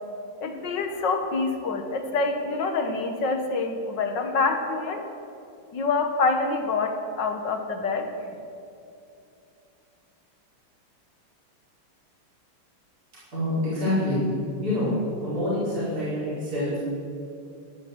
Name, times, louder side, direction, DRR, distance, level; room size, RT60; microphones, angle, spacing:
voice 1, 0.4-5.0 5.7-8.1, left 3 dB, 60° left, 6 dB, 1.7 m, -26 dB
voice 2, 13.3-14.2 14.6-14.9 15.2-16.8, left 1 dB, 40° right, -10 dB, 5.4 m, -26 dB
13.5 x 10.5 x 7.9 m, 2.6 s
omnidirectional pair, 2.4 m